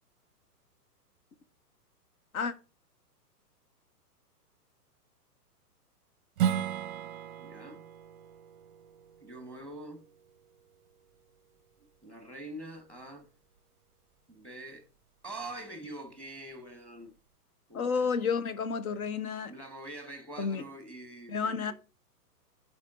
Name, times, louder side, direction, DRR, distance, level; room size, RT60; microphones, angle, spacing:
Strum, 6.4-11.6, right 9 dB, 35° right, 0.6 m, -36 dB
voice 1, 7.4-7.8 9.2-10.0 12.0-13.3 14.3-14.9 15.2-17.1 17.7-18.1 19.4-21.7, right 1 dB, 5° left, 1.4 m, -44 dB
voice 2, 17.7-19.5 20.4-20.6 21.3-21.7, left 5 dB, 60° left, 1.1 m, -31 dB
12.5 x 5.1 x 2.5 m
figure-of-eight pair, 120°, 48 cm